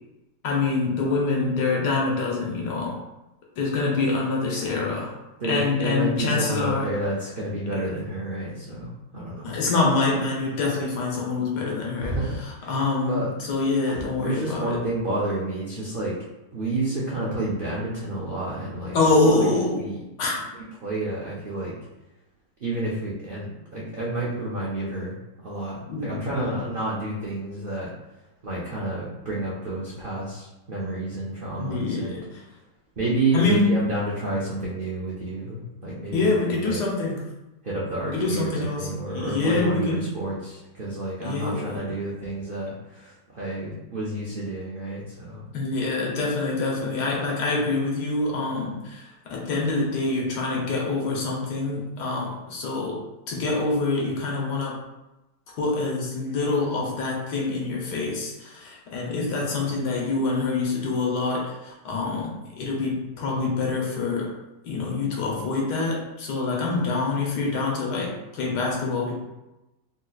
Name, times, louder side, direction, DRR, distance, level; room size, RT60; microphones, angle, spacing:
voice 1, 0.4-3.0 3.6-5.1 5.5-6.9 9.4-12.2 12.7-14.8 18.9-19.8 20.2-20.3 25.9-26.6 31.6-32.4 33.3-33.8 36.1-37.3 38.1-40.1 41.2-41.9 45.5-54.8 55.6-64.3 64.6-69.2, left 3 dB, 75° left, -2 dB, 1.4 m, -25 dB
voice 2, 4.4-5.0 5.4-9.5 12.0-12.8 13.1-13.3 13.9-16.1 16.5-19.5 19.7-20.0 20.8-21.7 22.6-27.9 28.4-32.2 33.0-36.8 37.6-45.5, right 2 dB, 85° right, -6 dB, 0.4 m, -30 dB
3.8 x 2.8 x 2.3 m, 0.98 s
omnidirectional pair, 1.9 m